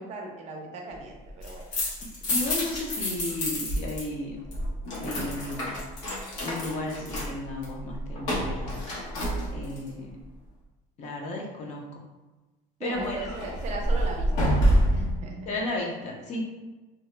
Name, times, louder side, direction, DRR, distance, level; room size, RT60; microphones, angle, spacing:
voice 1, 0.0-1.6 12.8-14.5 14.9-15.5, right 2 dB, 45° right, 1 dB, 0.5 m, -37 dB
sound 1, 1.3-4.0 4.3-9.9 12.9-15.2, equal, 80° left, 1.0 m, -28 dB
voice 2, 2.2-4.4 5.0-5.7 6.4-8.8 9.5-10.1 11.0-11.8 12.8-13.3 15.5-16.4, left 2 dB, 40° left, -1 dB, 0.6 m, -34 dB
2.8 x 2.0 x 3.2 m, 1.2 s
cardioid pair, 145°, 17 cm